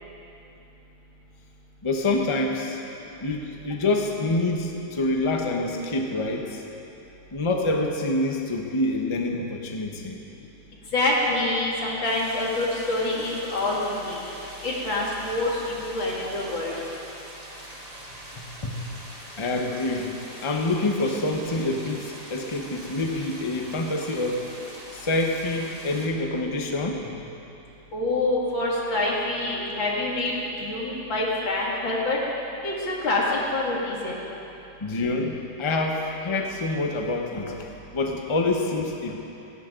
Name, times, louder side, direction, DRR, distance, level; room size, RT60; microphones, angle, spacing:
voice 1, 1.8-2.8 3.2-6.6 7.3-10.2 18.4-18.8 19.4-24.4 24.9-27.1 34.8-39.2, left 2 dB, 20° left, 2 dB, 0.9 m, -27 dB
voice 2, 10.9-14.2 14.6-16.8 27.9-30.3 30.6-32.2 32.6-33.2 33.5-34.1, left 2 dB, 85° left, -4 dB, 3.1 m, -26 dB
sound 1, 12.0-26.1, right 1 dB, 20° right, 1.8 m, -43 dB
16.5 x 16.5 x 3.9 m, 2.9 s
omnidirectional pair, 2.1 m